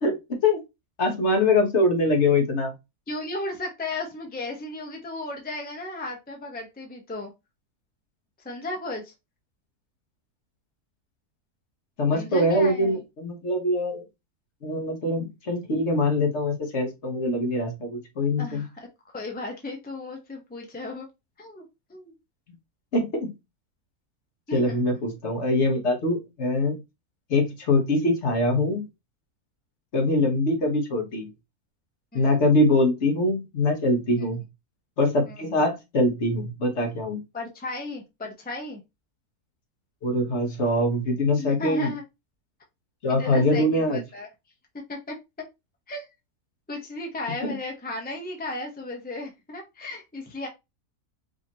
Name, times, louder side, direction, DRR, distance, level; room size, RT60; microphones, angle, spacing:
voice 1, 0.0-0.6 1.0-2.7 12.0-14.0 14.6-18.6 22.9-23.3 24.5-26.8 27.3-28.9 29.9-31.3 32.1-34.4 35.0-37.2 40.0-41.9 43.0-44.0 47.4-47.5, left 2 dB, 55° left, 3 dB, 1.3 m, -23 dB
voice 2, 3.1-7.3 8.4-9.1 12.1-13.0 18.4-18.7 19.1-21.1 21.4-22.1 24.5-24.8 32.1-32.3 35.4-35.5 37.3-38.8 41.4-42.0 43.1-44.3 44.9-45.1 45.9-46.1 46.7-50.5, left 2 dB, 10° left, 1 dB, 0.8 m, -35 dB
5.0 x 2.8 x 2.9 m, 0.23 s
omnidirectional pair, 1.5 m